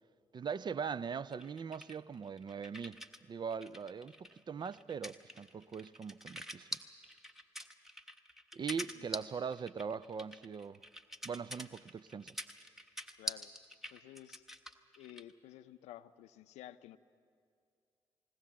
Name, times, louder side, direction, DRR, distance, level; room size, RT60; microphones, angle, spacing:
voice 1, 0.3-6.7 8.5-10.8 11.2-12.4, right 6 dB, 40° right, 0.4 m, -41 dB
sound 1, 1.3-3.2 3.5-15.3, equal, 5° right, 1.3 m, -46 dB
voice 2, 13.2-13.5 13.9-14.4 15.0-17.0, left 13 dB, 75° left, 0.5 m, -52 dB
20.5 x 18.0 x 7.3 m
hypercardioid pair, 45°, 11 cm